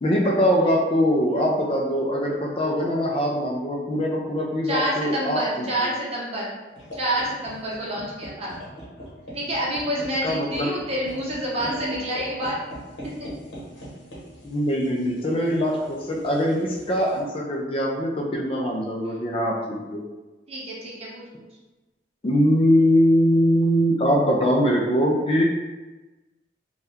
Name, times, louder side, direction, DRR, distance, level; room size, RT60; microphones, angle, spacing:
voice 1, 0.0-5.7 10.2-10.7 14.4-20.0 22.2-25.4, equal, 30° left, -1 dB, 0.4 m, -22 dB
voice 2, 4.7-6.5 6.9-8.5 9.3-12.6 19.0-19.2 20.5-21.5, right 1 dB, 35° right, -5 dB, 0.8 m, -28 dB
sound 1, 6.8-17.2, equal, 90° left, 0.9 m, -41 dB
2.7 x 2.3 x 3.4 m, 1.2 s
head